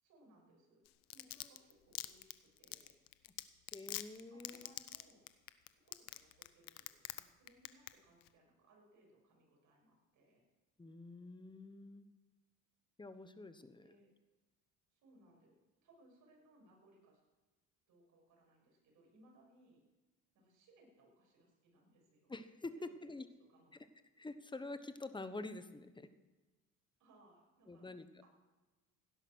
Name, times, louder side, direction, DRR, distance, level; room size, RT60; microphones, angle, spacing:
voice 1, 0.0-0.8 1.1-3.0 4.3-5.3 5.7-10.4 13.8-14.1 14.9-15.6 15.8-17.2 17.9-19.8 20.3-22.3 22.7-22.9 23.5-23.8 27.0-27.9, right 1 dB, 65° right, -1 dB, 6.6 m, -67 dB
Domestic sounds home sounds, 0.9-7.2 7.5-7.9 8.2-8.3, left 18 dB, 80° left, 0.8 m, -44 dB
voice 2, 3.7-4.8 10.8-12.1 13.0-13.9 22.3-22.7 23.0-23.2 23.7-23.9 24.2-26.1 27.7-28.1, left 2 dB, 15° left, 11 dB, 1.1 m, -47 dB
17.0 x 11.0 x 6.3 m, 1.2 s
cardioid pair, 105°, 32 cm